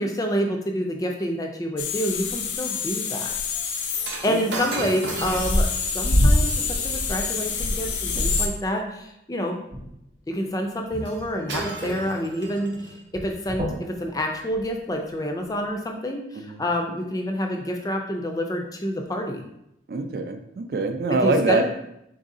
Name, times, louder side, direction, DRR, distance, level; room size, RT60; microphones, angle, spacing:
voice 1, 0.0-3.5 4.2-5.7 5.9-9.6 10.3-12.7 13.1-19.4 21.1-21.6, equal, 20° left, 3 dB, 0.4 m, -28 dB
sound 1, 1.8-8.5, left 2 dB, 85° left, 0.5 m, -25 dB
Shatter, 4.0-8.4 11.0-11.2 11.5-13.0 13.7-13.9, right 3 dB, 75° right, 0.7 m, -35 dB
voice 2, 8.1-8.5 16.3-16.6 19.9-21.6, right 2 dB, 55° right, 7 dB, 0.4 m, -25 dB
sound 2, 9.7-15.9, equal, 35° right, 0.9 m, -39 dB
3.9 x 2.7 x 3.7 m, 0.81 s
head